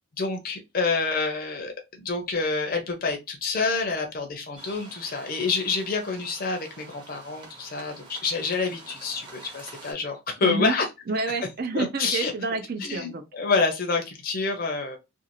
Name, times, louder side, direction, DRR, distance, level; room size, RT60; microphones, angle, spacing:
voice 1, 0.2-10.9 11.7-12.3 12.8-15.0, left 4 dB, 50° left, 0.6 m, -28 dB
sound 1, 4.6-9.9, right 3 dB, 25° right, 0.9 m, -47 dB
voice 2, 10.4-10.7 11.1-13.2, right 3 dB, 50° right, 0.6 m, -28 dB
2.6 x 2.4 x 2.9 m
head